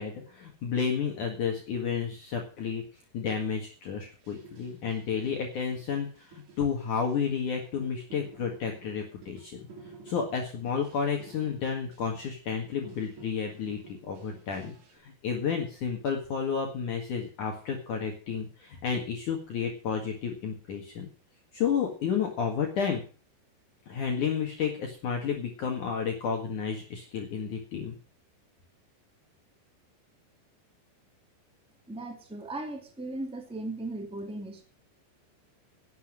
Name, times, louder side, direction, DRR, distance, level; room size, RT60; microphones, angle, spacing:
voice 1, 0.0-2.8 3.1-9.6 10.1-21.1 21.5-23.0 23.9-28.0, left 6 dB, 55° left, 1 dB, 2.8 m, -31 dB
sound 1, 4.2-12.6 12.8-15.0, right 4 dB, 50° right, 3.6 m, -52 dB
voice 2, 31.9-34.6, right 2 dB, 5° right, 3 dB, 0.7 m, -37 dB
11.5 x 8.1 x 7.6 m, 0.38 s
omnidirectional pair, 5.2 m